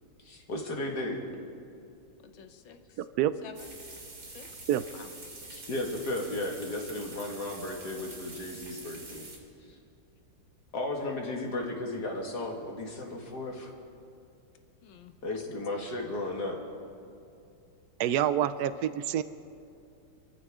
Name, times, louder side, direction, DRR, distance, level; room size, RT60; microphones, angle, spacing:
voice 1, 0.2-1.2 5.5-9.3 10.7-13.7 15.2-16.6, left 2 dB, 55° left, 1 dB, 2.5 m, -34 dB
voice 2, 2.2-3.1 3.4-3.7 4.3-4.6 4.9-5.1 14.8-15.4 15.8-15.9, left 7 dB, 75° left, 7 dB, 1.8 m, -51 dB
voice 3, 3.0-3.3 4.7-4.8 18.0-19.2, right 11 dB, 75° right, 13 dB, 0.9 m, -27 dB
sound 1, 3.5-9.4, right 2 dB, 55° right, 3.2 m, -46 dB
26.5 x 14.5 x 3.7 m, 2.6 s
omnidirectional pair, 2.2 m